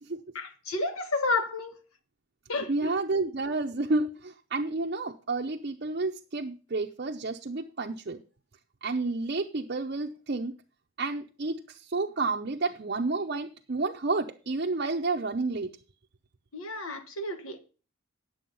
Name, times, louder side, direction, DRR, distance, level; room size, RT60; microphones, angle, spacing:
voice 1, 0.3-1.8 2.5-2.9 16.5-17.6, left 3 dB, 75° left, 1.5 m, -31 dB
voice 2, 2.7-8.2 8.8-10.5 11.0-15.7, right 3 dB, 45° right, 0.6 m, -30 dB
9.3 x 7.7 x 5.5 m
head